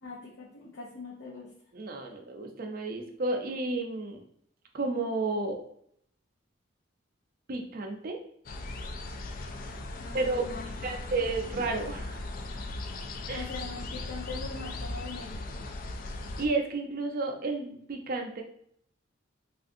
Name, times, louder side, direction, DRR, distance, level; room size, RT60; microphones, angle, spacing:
voice 1, 0.0-1.5 10.0-10.9 13.3-15.6, left 3 dB, 75° left, -6 dB, 0.8 m, -42 dB
voice 2, 1.7-4.2 4.7-5.6 7.5-8.2 10.1-10.4 10.8-12.2 13.3-13.4 16.4-18.4, right 3 dB, 50° right, 3 dB, 0.5 m, -32 dB
sound 1, 8.5-16.5, left 2 dB, 45° left, 0.3 m, -38 dB
3.5 x 2.5 x 2.6 m, 0.67 s
head